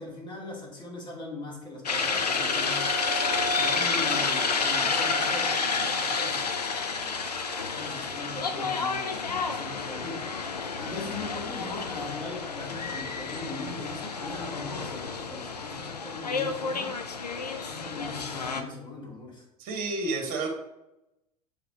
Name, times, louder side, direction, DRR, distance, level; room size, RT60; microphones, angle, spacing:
voice 1, 0.0-2.9 3.5-7.2 7.7-17.0 17.6-19.5, left 2 dB, 25° left, -2 dB, 2.2 m, -40 dB
sound 1, 1.9-18.6, left 4 dB, 80° left, 0.6 m, -30 dB
voice 2, 19.6-20.5, right 3 dB, 45° right, 3 dB, 1.6 m, -30 dB
6.9 x 4.9 x 3.0 m, 0.92 s
figure-of-eight pair, 75°, 20 cm